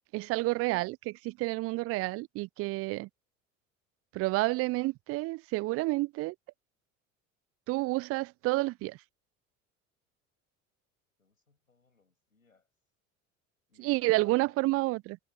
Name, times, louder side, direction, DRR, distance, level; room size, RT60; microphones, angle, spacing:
voice 1, 0.1-3.1 4.1-6.3 7.7-9.0 13.8-15.2, right 21 dB, 35° right, 0.4 m, -30 dB
voice 2, 11.2-12.7 13.7-14.7, left 4 dB, 90° left, 6.8 m, -62 dB
figure-of-eight pair, 65°, 40 cm